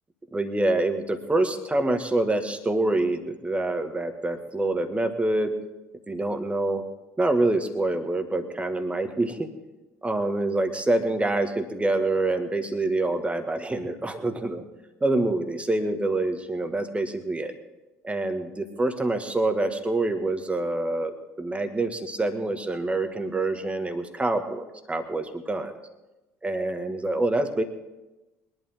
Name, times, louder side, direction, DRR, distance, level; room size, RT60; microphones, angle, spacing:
voice 1, 0.3-5.5 6.1-6.8 7.2-9.5 10.0-14.6 15.0-17.5 18.0-25.7 26.4-27.6, right 2 dB, 15° right, 7 dB, 1.8 m, -26 dB
22.0 x 11.5 x 3.7 m, 1.0 s
figure-of-eight pair, 60°, 8 cm